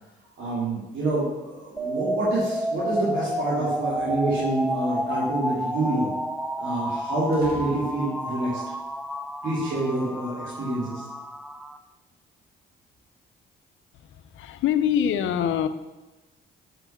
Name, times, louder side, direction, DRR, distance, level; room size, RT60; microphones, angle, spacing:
voice 1, 0.4-6.1 6.6-8.6 9.4-11.1, right 2 dB, 75° right, -7 dB, 2.9 m, -27 dB
sound 1, 1.8-11.8, equal, ahead, 0.5 m, -30 dB
sound 2, 3.9-4.9 7.3-8.4, right 2 dB, 50° right, 2.3 m, -45 dB
voice 2, 13.9-15.7, left 9 dB, 75° left, 10 dB, 0.7 m, -25 dB
7.4 x 6.0 x 6.9 m, 1.1 s
cardioid pair, 90°, 20 cm